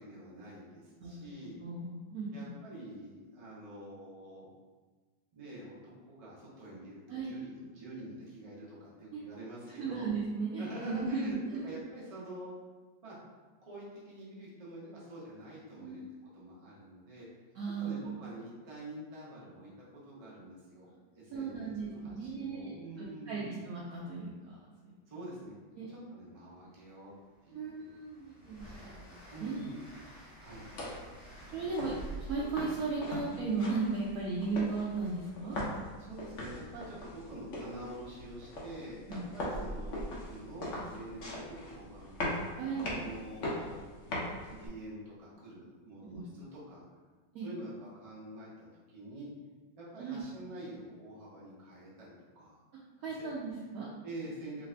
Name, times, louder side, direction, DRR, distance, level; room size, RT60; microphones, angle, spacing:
voice 1, 0.0-1.6 2.3-4.5 5.3-10.1 10.6-12.5 13.0-13.2 13.6-16.0 16.3-17.3 17.8-20.9 21.1-23.6 25.1-25.5 25.9-27.1 27.4-27.9 29.3-29.8 30.4-30.6 36.0-43.8 44.5-46.8 47.4-49.3 49.8-52.6 53.1-53.3 54.0-54.7, right 1 dB, 40° right, -6 dB, 0.5 m, -47 dB
voice 2, 1.0-2.6 7.1-7.3 9.1-9.2 9.8-11.7 15.7-16.1 17.6-18.2 21.3-24.5 24.8-25.0 25.8-25.9 27.5-29.7 30.6-31.0 31.5-35.6 39.1-39.3 42.6-42.9 46.1-46.2 47.3-47.5 50.0-50.2 53.0-53.9, right 4 dB, 75° right, -6 dB, 0.8 m, -36 dB
Train, 26.4-26.5 26.9-34.7, equal, 35° left, 1.3 m, -54 dB
sound 1, 30.5-44.7, left 1 dB, 60° left, 0.7 m, -40 dB
3.2 x 2.5 x 3.2 m, 1.4 s
omnidirectional pair, 2.0 m